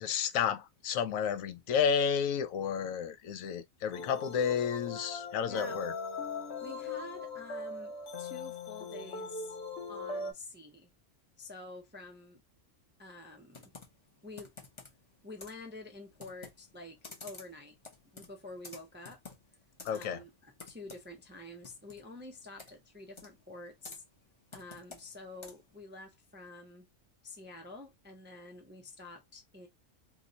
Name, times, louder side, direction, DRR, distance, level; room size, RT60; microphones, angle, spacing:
voice 1, 0.0-5.9 19.8-20.2, left 7 dB, 85° left, 1.0 m, -31 dB
sound 1, 3.9-10.3, left 3 dB, 60° left, 0.9 m, -40 dB
voice 2, 5.4-5.8 6.6-7.9 8.2-9.6 9.9-10.9 11.4-12.4 13.0-13.7 14.2-14.6 15.2-17.8 18.1-19.2 19.9-24.0 24.5-26.9 27.2-29.7, left 2 dB, 15° right, 0.3 m, -48 dB
Computer keyboard, 13.5-25.8, left 3 dB, 30° left, 0.6 m, -53 dB
2.9 x 2.1 x 3.8 m
omnidirectional pair, 1.4 m